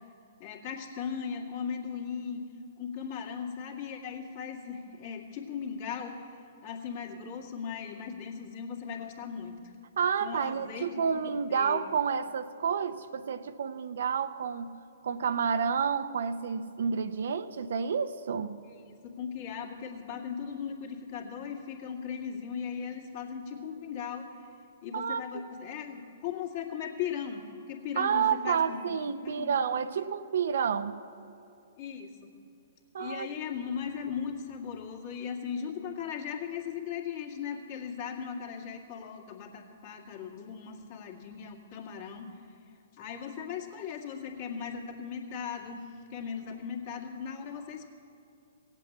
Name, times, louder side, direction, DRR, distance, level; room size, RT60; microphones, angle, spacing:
voice 1, 0.4-2.5 2.8-6.3 6.6-9.6 10.2-11.9 18.7-18.8 19.0-24.3 24.8-29.0 29.2-29.6 31.8-32.3 33.0-42.4 43.0-47.9, left 7 dB, 50° left, 0 dB, 2.1 m, -38 dB
voice 2, 10.0-14.8 15.0-18.7 24.9-25.2 28.0-31.0 32.9-33.3, right 7 dB, 70° right, 11 dB, 0.6 m, -30 dB
17.0 x 8.3 x 8.6 m, 2.6 s
hypercardioid pair, 125°, 0 cm